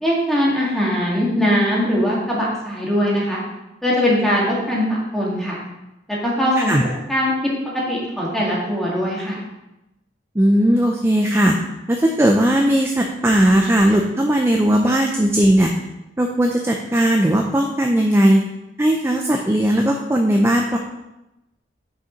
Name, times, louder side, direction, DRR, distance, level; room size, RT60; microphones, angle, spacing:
voice 1, 0.0-3.4 3.8-4.8 5.1-5.6 6.1-6.7 7.1-7.5 7.9-9.4, equal, ahead, -5 dB, 2.0 m, -20 dB
voice 2, 10.4-11.5 11.9-15.7 16.2-18.4 18.8-20.8, right 1 dB, 15° right, 2 dB, 0.5 m, -17 dB
6.7 x 5.3 x 5.2 m, 0.95 s
head